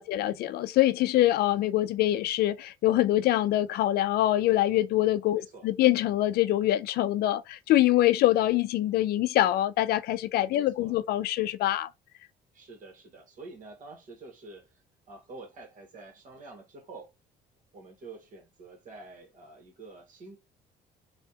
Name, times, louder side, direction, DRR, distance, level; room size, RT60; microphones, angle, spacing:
voice 1, 0.0-11.9, left 14 dB, 70° left, 0.4 m, -24 dB
voice 2, 5.3-5.7 10.5-10.9 12.5-14.7 15.1-17.1 17.7-20.4, right 3 dB, 50° right, 1.8 m, -47 dB
3.3 x 2.8 x 2.8 m
cardioid pair, 110°, 17 cm